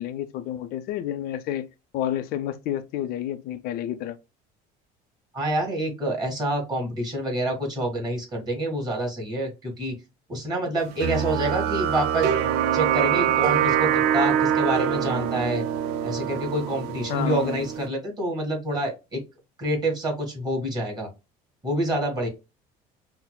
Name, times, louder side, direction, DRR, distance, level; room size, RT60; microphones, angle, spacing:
voice 1, 0.0-1.7 1.9-4.2 17.1-17.6, left 11 dB, 65° left, 0.5 m, -30 dB
voice 2, 5.3-10.0 10.3-12.3 12.7-15.6 16.0-19.2 19.6-21.1 21.6-22.3, right 1 dB, 25° right, 1.8 m, -27 dB
sound 1, 11.0-17.9, right 9 dB, 80° right, 0.5 m, -24 dB
5.7 x 2.0 x 2.2 m
cardioid pair, 130°, 17 cm